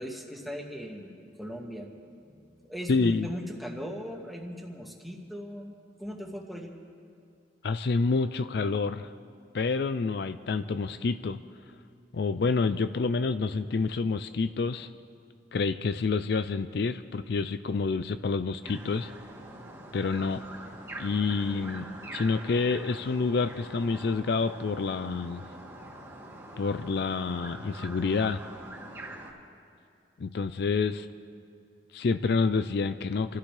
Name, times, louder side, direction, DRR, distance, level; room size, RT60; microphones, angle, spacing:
voice 1, 0.0-1.9 2.7-6.7, equal, ahead, -1 dB, 1.7 m, -39 dB
voice 2, 2.9-3.3 7.6-9.1 9.5-11.4 12.1-14.9 15.5-19.1 19.9-20.4 21.0-25.4 26.6-28.4 30.2-31.1 31.9-33.4, left 4 dB, 65° left, 11 dB, 0.4 m, -28 dB
sound 1, 18.6-29.3, right 1 dB, 15° right, 2.0 m, -44 dB
28.5 x 15.0 x 3.3 m, 2.4 s
head